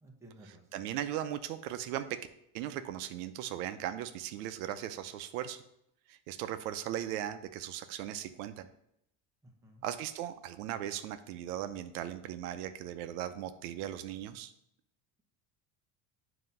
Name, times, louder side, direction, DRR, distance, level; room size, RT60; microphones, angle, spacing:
voice 1, 0.0-0.6 9.4-9.8, right 1 dB, 5° right, 0 dB, 0.8 m, -55 dB
voice 2, 0.7-2.2 2.5-5.6 6.1-8.7 9.8-14.5, right 11 dB, 80° right, 10 dB, 0.6 m, -38 dB
7.7 x 2.9 x 5.3 m, 0.76 s
cardioid pair, 150°, 43 cm